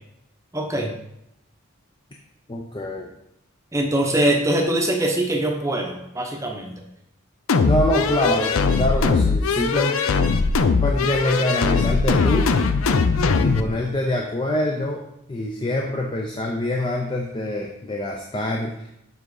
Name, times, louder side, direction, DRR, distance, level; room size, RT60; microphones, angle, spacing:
voice 1, 0.5-0.9 3.7-6.8, right 1 dB, 15° right, 2 dB, 0.8 m, -22 dB
voice 2, 2.5-3.1 7.6-10.0 10.8-12.5 13.3-15.0 15.3-18.7, left 1 dB, 25° left, 0 dB, 0.5 m, -25 dB
sound 1, 7.5-13.7, left 4 dB, 80° left, 0.5 m, -20 dB
7.2 x 3.7 x 4.8 m, 0.81 s
head